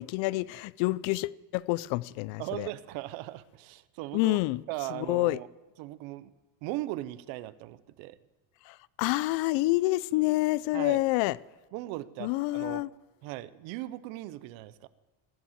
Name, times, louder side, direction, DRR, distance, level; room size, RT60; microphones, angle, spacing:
voice 1, 0.0-2.7 4.1-4.6 4.9-5.4 8.7-11.4 12.2-12.9, left 19 dB, 75° left, 0.6 m, -28 dB
voice 2, 2.4-4.4 4.7-5.5 5.8-6.3 6.6-8.2 10.7-11.0 11.7-12.8 13.2-14.9, right 16 dB, 85° right, 0.9 m, -38 dB
16.5 x 8.5 x 7.3 m
cardioid pair, 140°, 45 cm